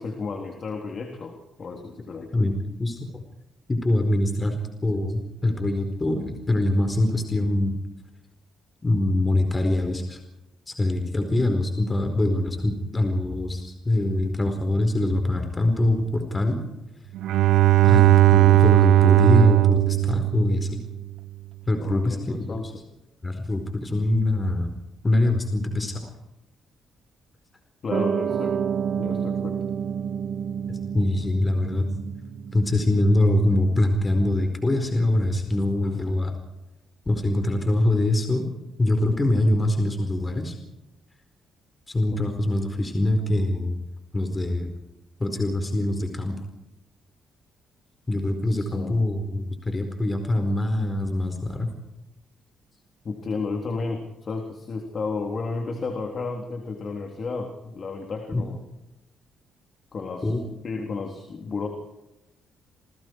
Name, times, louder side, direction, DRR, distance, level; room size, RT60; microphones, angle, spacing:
voice 1, 0.0-2.3 21.8-22.8 27.8-28.6 29.0-29.6 42.1-42.2 48.4-49.0 53.0-58.6 59.9-60.3 60.6-61.7, left 4 dB, 45° left, 3 dB, 3.6 m, -32 dB
voice 2, 3.7-7.8 8.8-10.2 10.7-16.6 17.8-20.8 21.7-22.5 23.2-24.7 25.0-26.1 30.7-31.8 32.5-36.3 37.1-38.5 38.8-40.5 41.9-43.8 44.1-44.7 45.2-46.3 48.1-51.7 58.3-58.4 60.2-60.4, left 1 dB, 25° left, 5 dB, 4.5 m, -23 dB
Bowed string instrument, 17.2-21.0, right 17 dB, 85° right, 0.7 m, -17 dB
Piano, 27.9-34.5, right 7 dB, 60° right, 2.4 m, -30 dB
29.5 x 20.0 x 4.7 m, 0.96 s
cardioid pair, 90°, 0 cm